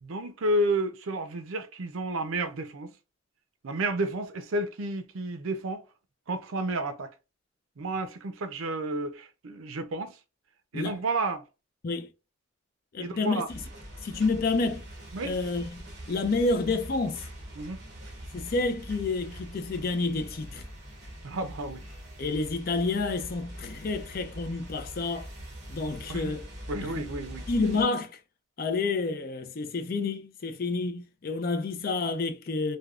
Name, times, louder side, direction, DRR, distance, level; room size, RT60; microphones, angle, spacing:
voice 1, 0.0-2.9 3.6-5.8 6.3-7.1 7.8-10.2 10.7-11.4 13.0-13.5 15.1-15.4 17.6-17.8 21.2-21.9 26.1-26.2 26.7-27.5, right 2 dB, 80° right, 0.5 m, -31 dB
voice 2, 12.9-13.6 14.0-14.8 15.2-17.3 18.3-20.6 22.2-25.3 25.7-26.5 26.8-26.9 27.5-28.2 28.6-32.8, left 3 dB, 45° left, 0.4 m, -29 dB
sound 1, 13.4-27.8, equal, 50° right, 1.0 m, -43 dB
3.3 x 2.3 x 2.4 m
head